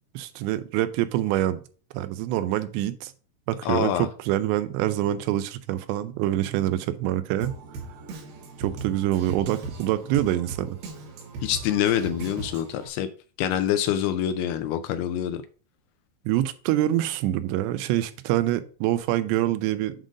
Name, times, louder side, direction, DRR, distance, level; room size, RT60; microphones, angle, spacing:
voice 1, 0.1-1.6 1.9-3.1 3.5-7.5 8.6-10.8 16.3-19.9, right 13 dB, 90° right, 2.9 m, -25 dB
voice 2, 3.6-4.1 11.4-13.1 13.4-15.4, left 10 dB, 80° left, 2.4 m, -25 dB
Drum kit, 7.4-12.9, right 3 dB, 70° right, 3.0 m, -39 dB
7.7 x 3.8 x 5.0 m
omnidirectional pair, 4.9 m